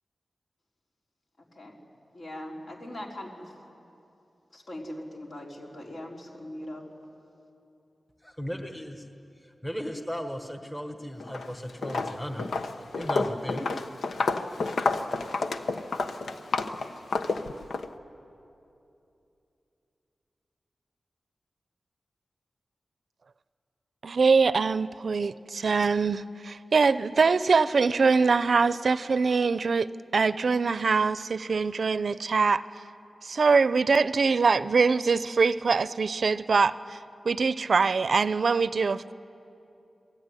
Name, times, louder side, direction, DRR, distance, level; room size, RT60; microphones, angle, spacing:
voice 1, 1.4-1.8 2.1-3.5 4.5-6.8, left 1 dB, 60° left, -1 dB, 4.4 m, -40 dB
voice 2, 8.2-9.0 9.6-12.6 13.0-13.7, equal, 10° left, 5 dB, 1.4 m, -36 dB
Walk footsteps, 11.2-11.5 11.8-17.9, left 3 dB, 90° left, 1.1 m, -29 dB
voice 3, 24.0-32.6 33.2-37.0 37.2-39.1, right 4 dB, 60° right, 15 dB, 0.6 m, -23 dB
28.5 x 20.5 x 9.8 m, 2.8 s
wide cardioid pair, 125°, 0 cm